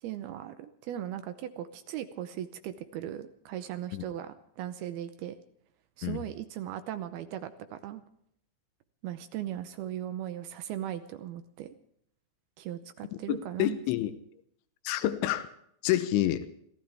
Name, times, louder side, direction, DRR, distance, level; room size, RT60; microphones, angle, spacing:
voice 1, 0.0-5.4 6.0-8.0 9.0-11.8 12.6-13.8, right 11 dB, 75° right, 10 dB, 2.3 m, -38 dB
voice 2, 13.3-14.1 14.8-15.5 15.8-16.5, left 14 dB, 90° left, 11 dB, 3.4 m, -28 dB
26.5 x 15.5 x 3.5 m, 0.70 s
omnidirectional pair, 5.3 m